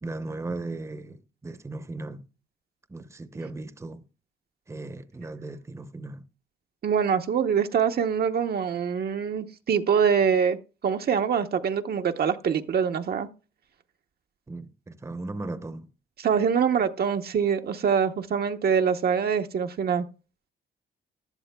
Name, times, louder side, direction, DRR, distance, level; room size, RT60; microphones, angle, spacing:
voice 1, 0.0-2.3 2.9-4.0 4.7-6.2 14.5-15.9, right 2 dB, 15° right, 0.8 m, -37 dB
voice 2, 6.8-10.6 10.8-13.3 16.2-20.0, right 7 dB, 50° right, 0.8 m, -24 dB
15.5 x 11.0 x 2.2 m
cardioid pair, 90°, 20 cm